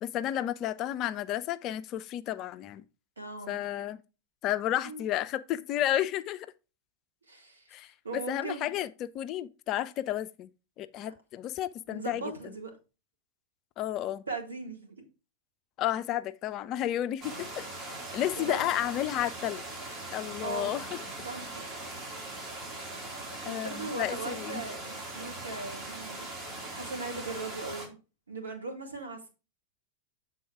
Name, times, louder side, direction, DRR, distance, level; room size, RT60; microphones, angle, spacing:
voice 1, 0.0-2.8 3.5-4.0 4.4-6.5 7.7-10.5 10.8-12.3 13.8-14.2 15.8-19.6 20.1-21.0 23.5-24.6, left 12 dB, 35° left, 0.4 m, -32 dB
voice 2, 3.2-3.6 4.8-5.0 7.3-7.8 8.0-8.7 11.0-11.1 11.9-12.7 14.3-15.0 18.3-18.6 20.4-20.8 21.3-21.7 23.5-26.3 26.8-28.0 28.3-29.3, right 3 dB, 75° right, 1.7 m, -39 dB
sound 1, 17.2-27.9, right 2 dB, 35° right, 2.6 m, -40 dB
7.6 x 4.1 x 4.8 m
figure-of-eight pair, 90°, 0 cm